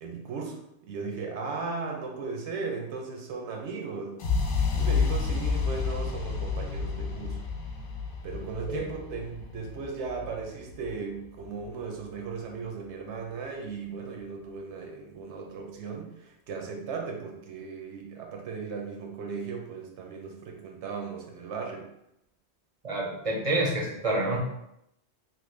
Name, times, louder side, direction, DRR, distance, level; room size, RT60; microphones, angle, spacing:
voice 1, 0.0-4.2 4.7-7.4 8.2-21.9, right 5 dB, 85° right, 1 dB, 1.0 m, -37 dB
sound 1, 4.2-12.1, left 5 dB, 60° left, 0.7 m, -30 dB
voice 2, 22.8-24.4, right 2 dB, 40° right, -2 dB, 0.5 m, -28 dB
3.0 x 2.2 x 3.2 m, 0.80 s
omnidirectional pair, 1.1 m